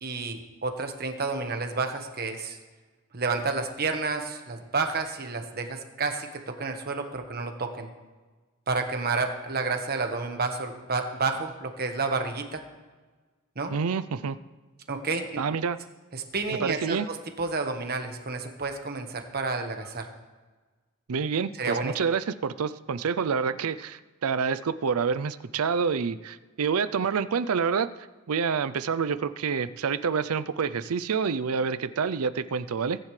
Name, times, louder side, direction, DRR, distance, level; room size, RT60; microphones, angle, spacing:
voice 1, 0.0-2.6 3.1-7.9 8.7-12.6 13.5-13.7 14.9-15.4 16.1-20.1 21.6-21.9, right 4 dB, 45° right, 5 dB, 1.4 m, -30 dB
voice 2, 13.7-14.4 15.4-15.8 16.6-17.1 21.1-27.9 28.3-33.0, right 6 dB, 80° right, 14 dB, 0.5 m, -27 dB
22.5 x 10.5 x 3.3 m, 1.3 s
head